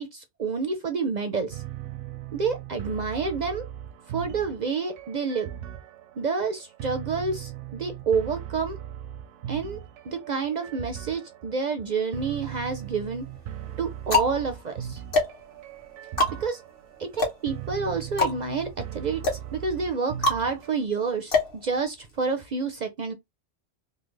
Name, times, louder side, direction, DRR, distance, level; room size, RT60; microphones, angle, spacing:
voice 1, 0.0-1.6 2.3-3.7 4.1-5.5 6.2-8.8 9.5-9.8 10.0-13.3 13.8-15.0 16.4-16.6 17.0-19.2 19.5-23.1, right 5 dB, 55° right, 0.5 m, -29 dB
sound 1, 1.5-20.8, right 11 dB, 80° right, 0.9 m, -39 dB
sound 2, 12.2-12.9 13.5-22.3, left 2 dB, 50° left, 1.3 m, -28 dB
3.5 x 2.1 x 3.2 m
omnidirectional pair, 1.2 m